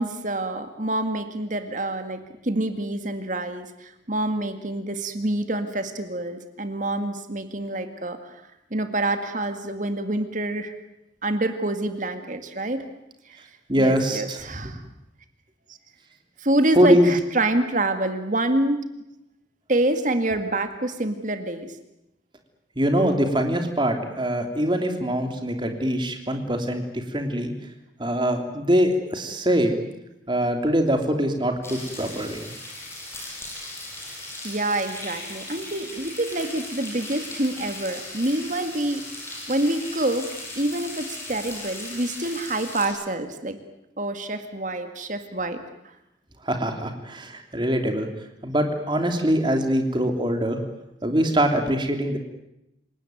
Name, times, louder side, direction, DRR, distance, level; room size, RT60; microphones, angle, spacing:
voice 1, 0.0-8.4 8.7-10.7 11.2-12.9 13.3-13.4 13.7-14.8 16.4-18.8 19.7-21.8 34.4-40.3 40.6-43.6 44.0-45.6, right 1 dB, 45° right, 8 dB, 2.1 m, -27 dB
voice 2, 13.7-14.7 16.8-17.1 22.8-27.5 28.0-29.8 30.3-32.4 46.4-48.1 48.4-50.6 51.0-52.2, equal, 25° right, 5 dB, 3.2 m, -23 dB
sound 1, 31.6-42.9, left 2 dB, 15° left, 7.8 m, -38 dB
28.0 x 18.0 x 9.4 m, 0.87 s
head